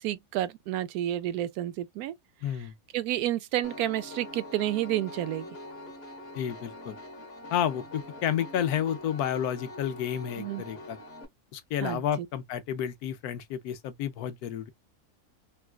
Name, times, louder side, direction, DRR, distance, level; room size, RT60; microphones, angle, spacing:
voice 1, 0.0-2.1 2.9-5.5 10.4-10.6 11.8-12.0, right 13 dB, 80° right, 1.0 m, -30 dB
voice 2, 2.4-2.7 6.3-7.0 7.5-11.0 11.5-14.7, left 9 dB, 85° left, 1.2 m, -31 dB
Piano, 3.6-11.2, left 1 dB, 45° left, 1.2 m, -44 dB
4.0 x 2.3 x 2.2 m
omnidirectional pair, 1.6 m